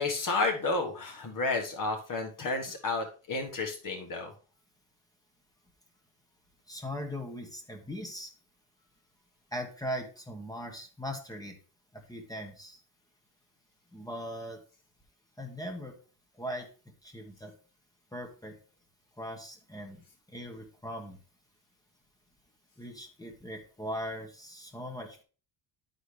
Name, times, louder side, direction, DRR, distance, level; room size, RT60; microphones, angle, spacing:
voice 1, 0.0-4.3, left 3 dB, 40° left, 3 dB, 1.5 m, -31 dB
voice 2, 6.7-8.3 9.5-11.6 11.9-12.8 13.9-14.6 15.4-16.0 16.4-16.7 17.0-17.5 18.1-18.5 19.2-20.0 20.3-21.2 22.8-25.2, equal, 5° left, 3 dB, 1.2 m, -39 dB
11.0 x 4.1 x 3.3 m, 0.36 s
cardioid pair, 125°, 48 cm